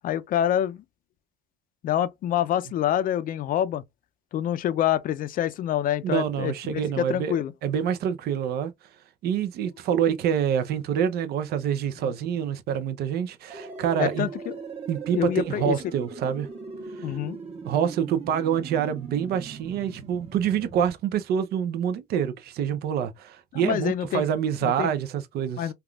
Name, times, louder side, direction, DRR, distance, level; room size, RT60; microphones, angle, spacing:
voice 1, 0.0-0.8 1.8-3.8 4.3-7.5 12.0-12.1 14.0-14.6 15.1-15.8 17.0-17.4 23.5-24.2 24.6-24.9 25.6-25.7, left 11 dB, 55° left, 0.4 m, -26 dB
voice 2, 6.0-8.7 9.2-14.3 14.9-16.5 17.6-25.7, right 8 dB, 70° right, 0.6 m, -26 dB
sound 1, 13.5-20.9, right 5 dB, 40° right, 1.1 m, -39 dB
3.4 x 2.3 x 2.3 m
cardioid pair, 110°, 17 cm